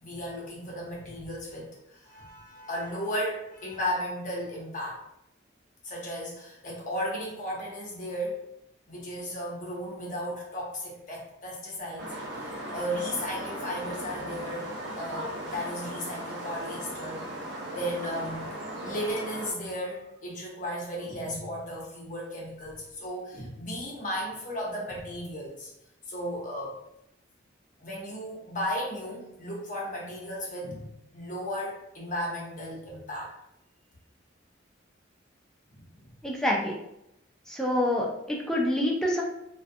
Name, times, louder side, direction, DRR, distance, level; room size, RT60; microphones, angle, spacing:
voice 1, 0.0-5.0 5.8-8.4 8.9-14.7 14.9-17.2 17.7-18.5 18.8-25.7 26.1-26.7 27.8-30.9 31.1-33.3 35.7-36.1, equal, 40° left, -4 dB, 0.7 m, -35 dB
sound 1, 12.0-19.5, right 1 dB, 65° right, 0.5 m, -37 dB
voice 2, 36.2-36.7 37.5-39.2, left 1 dB, 5° left, -2 dB, 0.3 m, -27 dB
2.4 x 2.2 x 2.6 m, 0.83 s
head